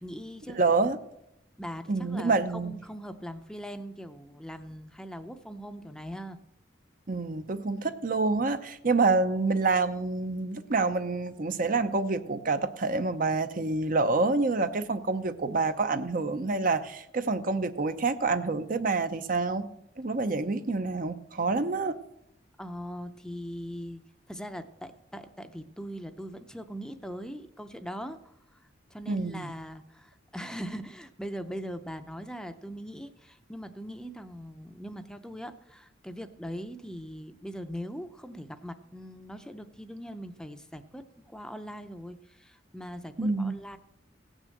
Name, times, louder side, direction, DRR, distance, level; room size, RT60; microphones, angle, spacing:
voice 1, 0.0-0.6 1.6-6.4 22.6-24.0 24.3-43.8, equal, 5° left, 8 dB, 0.6 m, -41 dB
voice 2, 0.6-1.0 1.9-2.7 7.1-19.7 20.0-22.0 29.1-29.5 43.2-43.5, right 3 dB, 50° right, 10 dB, 0.7 m, -27 dB
17.0 x 6.3 x 7.7 m, 0.81 s
head